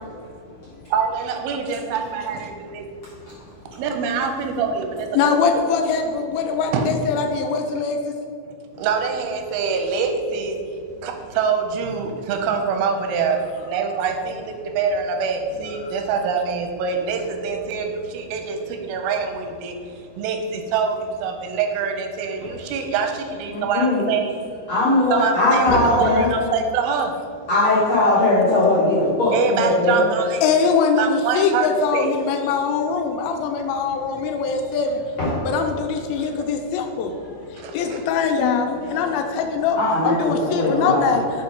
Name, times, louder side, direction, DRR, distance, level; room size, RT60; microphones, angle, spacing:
voice 1, 0.9-2.9 3.7-5.1 6.7-6.9 8.8-10.6 11.0-19.8 20.2-24.3 25.1-25.7 26.0-27.1 29.3-30.4 31.0-31.7 31.9-32.1 37.6-38.0, right 6 dB, 90° right, 4 dB, 2.5 m, -25 dB
voice 2, 5.1-8.1 15.8-15.9 30.4-35.0 35.4-37.1 37.5-39.8 40.0-41.2, left 5 dB, 80° left, 4 dB, 2.3 m, -22 dB
voice 3, 23.7-24.0 24.7-26.3 27.5-30.0 35.2-35.5 37.0-37.3 37.6-37.7 38.4-38.5 38.8-39.1 39.8-41.2, left 2 dB, 60° left, -9 dB, 1.5 m, -20 dB
5.8 x 4.8 x 4.5 m, 2.5 s
omnidirectional pair, 4.4 m